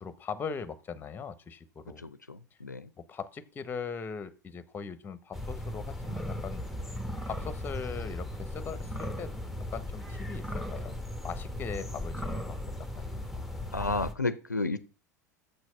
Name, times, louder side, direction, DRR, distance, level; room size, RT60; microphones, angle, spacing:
voice 1, 0.0-2.0 3.1-6.7 7.2-9.4 9.7-11.0 11.2-13.5, left 5 dB, 20° left, 14 dB, 0.9 m, -40 dB
voice 2, 2.0-2.9 13.7-14.8, left 3 dB, 85° left, 14 dB, 0.5 m, -32 dB
sound 1, 5.3-14.1, left 1 dB, ahead, 1.2 m, -37 dB
6.9 x 6.2 x 5.8 m, 0.38 s
figure-of-eight pair, 80°, 9 cm